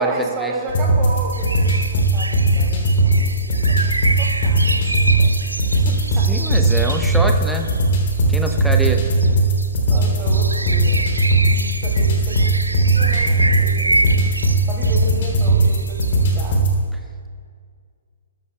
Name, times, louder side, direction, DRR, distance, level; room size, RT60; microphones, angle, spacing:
voice 1, 0.0-6.4 8.5-8.7 9.1-9.4 9.8-11.2 11.5-14.2 14.7-16.7, right 2 dB, 20° right, -2 dB, 2.7 m, -33 dB
sound 1, 0.7-16.7, right 2 dB, 45° left, 3.3 m, -18 dB
sound 2, 1.3-16.3, right 2 dB, 80° right, 0.6 m, -28 dB
voice 2, 6.3-7.7 8.3-9.0, right 1 dB, ahead, 3 dB, 1.0 m, -24 dB
20.5 x 13.5 x 2.3 m, 2.1 s
figure-of-eight pair, 125°, 0 cm